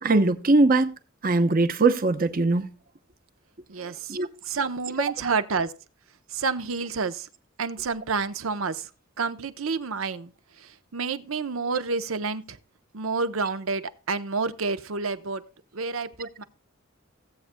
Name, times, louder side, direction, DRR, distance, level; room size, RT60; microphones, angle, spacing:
voice 1, 0.0-0.9 1.2-2.7 3.8-4.3, right 3 dB, 45° right, 0.8 m, -21 dB
voice 2, 3.7-4.2 4.4-5.7 6.3-7.3 7.6-8.9 9.2-10.3 10.6-12.6 12.9-15.4 15.7-16.4, right 4 dB, 85° right, 0.8 m, -29 dB
17.0 x 8.1 x 2.2 m
head